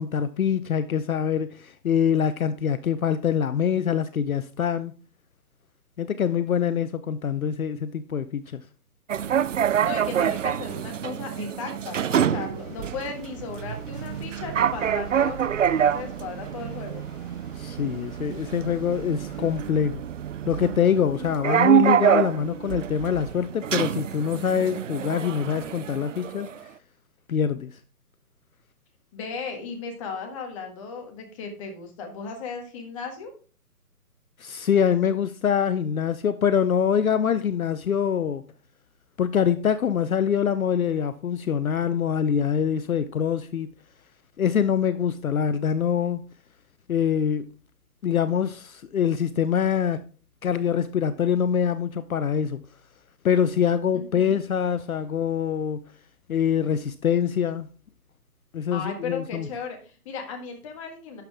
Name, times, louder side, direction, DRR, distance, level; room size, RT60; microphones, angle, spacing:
voice 1, 0.0-4.9 6.0-8.6 17.5-20.0 20.5-26.5 27.3-27.8 34.4-38.4 39.2-43.7 44.4-46.2 46.9-47.5 48.0-50.0 50.4-52.6 53.2-55.8 56.3-57.7 58.5-59.5, left 8 dB, 65° left, 0.7 m, -24 dB
sound 1, 9.1-26.6, right 9 dB, 55° right, 0.5 m, -26 dB
voice 2, 9.8-17.1 29.1-33.3 53.9-54.4 58.7-61.2, left 5 dB, 20° left, 1.6 m, -36 dB
sound 2, 12.5-19.6, right 1 dB, 5° left, 0.7 m, -48 dB
11.5 x 7.1 x 3.5 m
hypercardioid pair, 155°, 46 cm